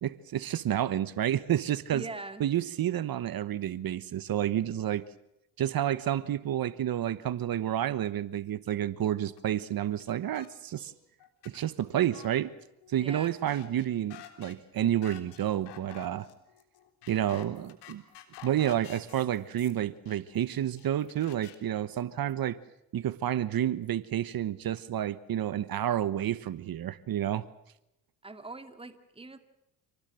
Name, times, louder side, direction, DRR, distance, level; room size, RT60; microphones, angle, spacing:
voice 1, 0.0-2.0 2.4-5.0 5.6-10.9 11.4-12.5 12.9-16.3 17.1-18.0 18.4-22.6 22.9-27.4, right 11 dB, 60° right, 15 dB, 1.2 m, -30 dB
voice 2, 1.9-2.5 12.9-13.3 17.3-17.4 28.2-29.4, right 3 dB, 15° right, 8 dB, 2.3 m, -42 dB
sound 1, 9.4-9.5 9.9-10.5 10.8-10.9 11.2-22.3, left 12 dB, 85° left, 3.6 m, -51 dB
28.0 x 19.0 x 7.7 m, 0.85 s
cardioid pair, 80°, 40 cm